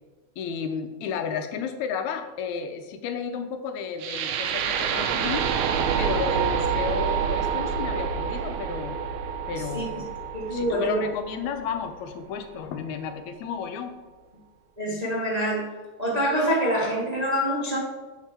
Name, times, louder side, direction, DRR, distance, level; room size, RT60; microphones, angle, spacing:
voice 1, 0.4-5.5 6.0-9.0 9.5-9.9 10.5-13.9, left 7 dB, 80° left, 7 dB, 2.1 m, -32 dB
sound 1, 4.0-12.0, right 7 dB, 85° right, 2.1 m, -27 dB
voice 2, 10.3-11.1 14.8-15.7 16.0-17.8, equal, 25° right, -5 dB, 0.8 m, -25 dB
8.8 x 5.9 x 4.4 m, 1.3 s
omnidirectional pair, 3.4 m